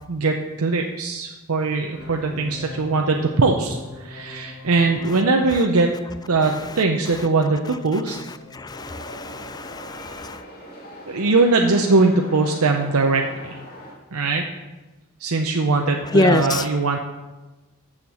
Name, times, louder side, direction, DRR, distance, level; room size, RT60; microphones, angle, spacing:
voice 1, 0.1-5.9 6.3-8.2 11.1-13.6 14.1-14.4 15.2-17.0, right 3 dB, 90° right, 2 dB, 0.7 m, -21 dB
sound 1, 1.9-9.6, left 2 dB, 65° left, 3.2 m, -43 dB
voice 2, 8.5-10.4 16.1-16.7, left 2 dB, 20° left, 12 dB, 0.4 m, -23 dB
sound 2, 8.7-13.9, equal, 40° left, 1.9 m, -40 dB
7.1 x 6.6 x 7.7 m, 1.1 s
head